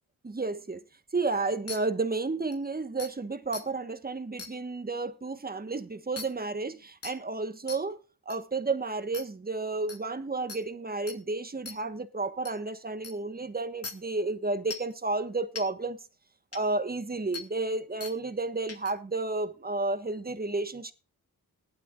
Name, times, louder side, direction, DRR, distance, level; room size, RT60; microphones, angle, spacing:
voice 1, 0.2-0.8 1.1-8.0 8.3-16.0 16.5-20.9, right 3 dB, 25° right, 1.4 m, -32 dB
sound 1, 1.7-1.8 2.5-2.6 3.0-3.1 3.5-3.6 4.4-4.5 6.2-6.3 7.0-7.1 7.7-7.8 8.3-8.4 9.1-9.2 9.9-10.0 10.5-10.6 11.1-11.2 11.7-11.8 12.4-12.5 13.0-13.1 13.8-13.9 14.7-14.9 15.6-15.7 16.5-16.6 17.3-17.4 18.0-18.1 18.7-18.9, left 4 dB, 40° left, 2.5 m, -39 dB
19.0 x 11.5 x 2.5 m
wide cardioid pair, 110°, 36 cm